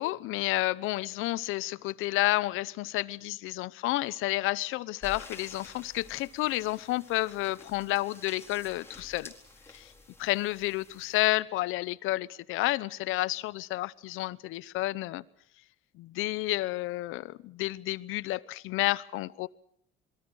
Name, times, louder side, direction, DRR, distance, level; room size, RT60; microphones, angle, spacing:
voice 1, 0.0-9.3 9.7-9.9 10.2-15.2 15.9-19.5, left 18 dB, 75° left, 0.9 m, -30 dB
sound 1, 5.0-11.3, left 2 dB, 10° left, 4.4 m, -50 dB
27.5 x 22.5 x 6.3 m
cardioid pair, 105°, 21 cm